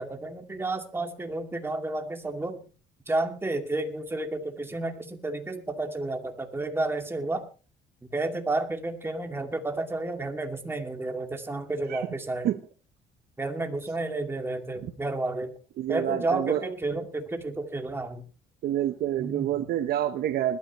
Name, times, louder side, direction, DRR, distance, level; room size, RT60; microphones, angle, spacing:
voice 1, 0.0-2.6 3.1-7.4 8.1-12.5 13.4-15.5 15.9-18.2 19.2-19.5, right 2 dB, 15° right, 2.4 m, -31 dB
voice 2, 15.8-16.6 18.6-20.6, right 11 dB, 65° right, 1.0 m, -27 dB
21.0 x 12.5 x 3.1 m
cardioid pair, 110°, 17 cm